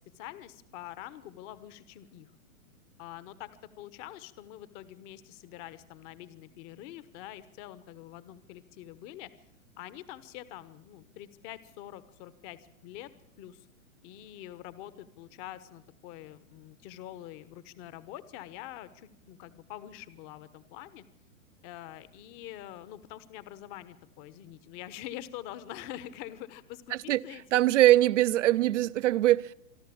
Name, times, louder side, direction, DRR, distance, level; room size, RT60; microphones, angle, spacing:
voice 1, 0.0-2.3 3.0-3.5 3.8-9.3 9.8-13.1 13.4-13.7 14.0-21.0 21.6-27.6, left 13 dB, 35° left, 1.2 m, -45 dB
voice 2, 27.5-29.5, right 14 dB, 60° right, 0.8 m, -22 dB
26.5 x 12.0 x 8.6 m
hypercardioid pair, 125°, 41 cm